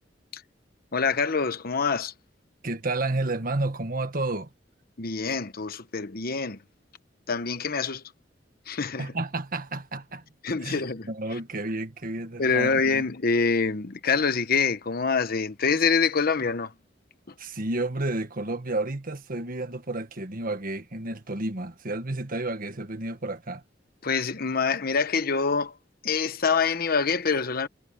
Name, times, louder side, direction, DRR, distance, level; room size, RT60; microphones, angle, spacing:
voice 1, 0.9-2.1 5.0-6.6 7.3-8.0 8.7-9.1 10.4-11.1 12.4-16.7 24.0-25.7 26.0-27.7, left 5 dB, 55° left, 1.1 m, -25 dB
voice 2, 2.6-4.5 9.0-10.2 10.6-13.0 17.4-23.6, right 2 dB, 50° right, 1.6 m, -31 dB
head